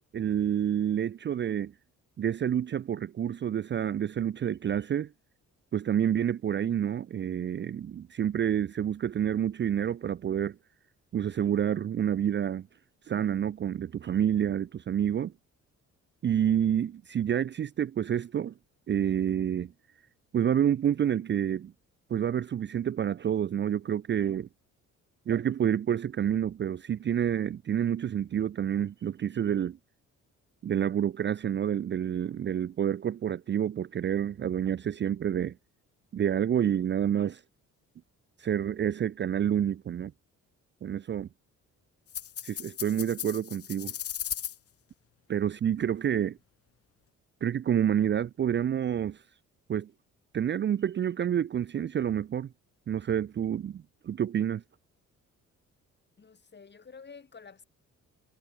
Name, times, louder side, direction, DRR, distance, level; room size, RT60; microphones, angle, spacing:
voice 1, 0.1-1.7 2.2-5.1 5.7-10.6 11.1-12.7 13.1-15.3 16.2-18.5 18.9-19.7 20.3-21.7 22.1-24.5 25.3-29.8 30.6-35.6 36.1-37.4 38.4-40.1 40.8-41.3 42.4-43.9 45.3-46.4 47.4-49.2 49.7-49.9 50.3-52.5 52.9-54.6, right 9 dB, 40° right, 0.5 m, -28 dB
sound 1, 42.1-44.6, left 9 dB, 50° left, 1.1 m, -37 dB
voice 2, 56.2-57.6, left 5 dB, 35° left, 5.3 m, -50 dB
cardioid pair, 90°, 30 cm